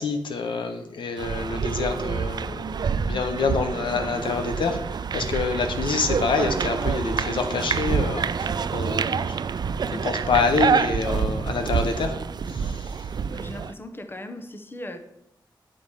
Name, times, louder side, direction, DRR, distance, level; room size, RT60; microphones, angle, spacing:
voice 1, 0.0-9.4 9.9-12.2 12.5-13.0, left 4 dB, 90° left, 6 dB, 1.1 m, -27 dB
sound 1, 1.2-13.7, right 6 dB, 60° right, 0.4 m, -27 dB
voice 2, 13.2-15.0, left 1 dB, 25° left, 7 dB, 1.1 m, -38 dB
8.9 x 5.0 x 7.2 m, 0.81 s
wide cardioid pair, 80°, 8 cm